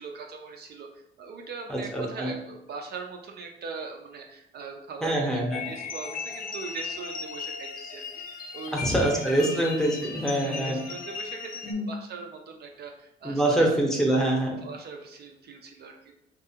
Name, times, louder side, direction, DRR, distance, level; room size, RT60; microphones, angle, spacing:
voice 1, 0.0-9.6 10.3-13.7 14.6-16.2, right 4 dB, 55° right, 2 dB, 0.4 m, -41 dB
voice 2, 1.7-2.3 5.0-5.6 8.7-10.8 11.6-11.9 13.2-14.6, right 1 dB, 5° left, -1 dB, 0.7 m, -25 dB
sound 1, 5.5-11.7, left 5 dB, 45° left, 0.4 m, -37 dB
2.6 x 2.3 x 2.7 m, 0.84 s
cardioid pair, 90°, 20 cm